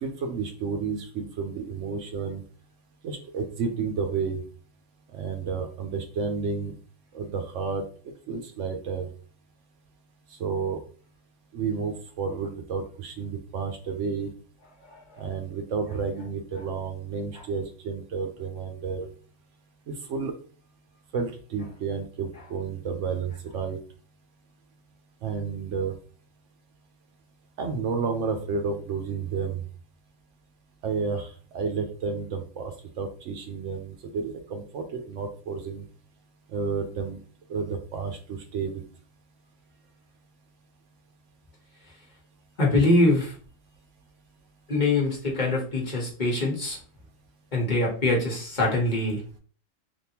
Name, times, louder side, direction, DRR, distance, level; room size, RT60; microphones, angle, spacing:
voice 1, 0.0-2.4 3.0-4.4 5.1-6.7 7.1-7.8 8.3-9.1 10.4-10.8 11.5-14.3 15.2-19.1 19.9-20.3 21.1-23.8 25.2-25.9 27.6-29.6 30.8-31.3 31.5-32.7 33.0-35.8 36.5-37.2 37.5-38.8, right 5 dB, 70° right, 6 dB, 0.9 m, -31 dB
voice 2, 42.6-43.3 44.7-46.8 47.5-49.2, left 2 dB, 40° left, -3 dB, 1.0 m, -23 dB
3.5 x 2.6 x 2.8 m, 0.41 s
omnidirectional pair, 1.3 m